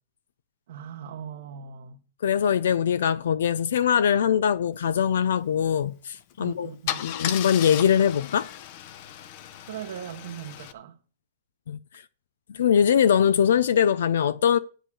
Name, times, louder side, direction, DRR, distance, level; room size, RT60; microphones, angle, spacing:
voice 1, 0.7-2.0 6.4-7.1 9.7-11.0, right 9 dB, 65° right, 1.1 m, -39 dB
voice 2, 2.2-6.7 7.0-8.5 11.7-11.8 12.5-14.6, left 8 dB, 80° left, 0.5 m, -22 dB
Car / Engine starting / Idling, 6.1-6.3 6.9-10.7, left 11 dB, 45° left, 0.8 m, -35 dB
8.1 x 7.9 x 6.2 m
hypercardioid pair, 150°, 0 cm